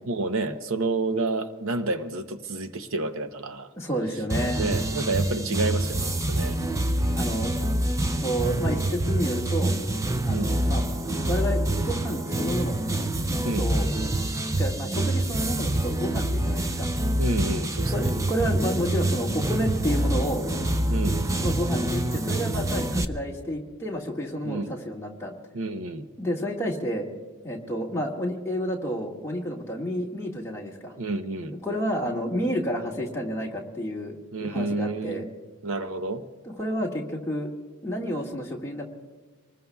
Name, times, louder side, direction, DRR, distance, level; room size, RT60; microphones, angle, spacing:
voice 1, 0.1-3.7 4.6-6.6 10.3-10.6 13.4-13.7 17.2-18.1 20.9-21.3 24.4-24.8 25.5-26.1 31.0-31.6 34.3-35.3 35.6-36.3, right 2 dB, 65° right, 8 dB, 0.8 m, -29 dB
voice 2, 3.8-4.6 7.1-7.5 8.1-9.7 10.2-10.8 11.3-12.7 13.3-13.9 14.6-16.9 17.9-20.4 21.4-25.3 26.2-27.1 27.4-30.9 31.6-35.2 36.6-37.5 37.8-38.9, equal, 10° left, -3 dB, 1.8 m, -30 dB
sound 1, 4.3-23.0, right 1 dB, 15° right, 0.5 m, -26 dB
25.5 x 20.0 x 2.3 m, 1.4 s
head